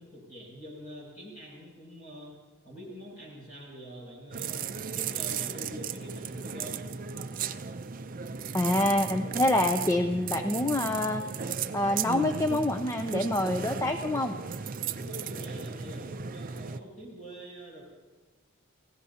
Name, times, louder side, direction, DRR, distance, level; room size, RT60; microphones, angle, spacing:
voice 1, 0.0-2.3 2.6-4.7 4.9-6.8 14.8-17.8, equal, 35° left, -3 dB, 7.0 m, -45 dB
sound 1, 4.3-16.8, right 6 dB, 40° right, 0.5 m, -35 dB
voice 2, 8.5-11.2 11.7-14.4, left 1 dB, 15° left, 6 dB, 0.5 m, -26 dB
29.0 x 16.0 x 2.9 m, 1.3 s
head